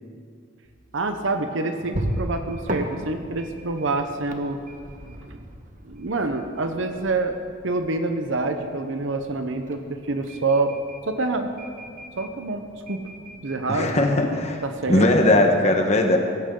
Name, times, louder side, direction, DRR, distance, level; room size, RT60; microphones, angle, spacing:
sound 1, 0.6-15.0, right 1 dB, 40° right, 1.2 m, -37 dB
voice 1, 0.9-4.6 5.0-5.1 5.8-7.4 7.6-10.8 11.1-11.5 12.2-13.0 13.4-14.1 14.6-15.3, right 3 dB, 75° right, 7 dB, 0.9 m, -26 dB
voice 2, 13.7-14.6 14.9-16.2, left 1 dB, 35° left, 3 dB, 1.2 m, -19 dB
17.0 x 15.5 x 3.8 m, 2.2 s
head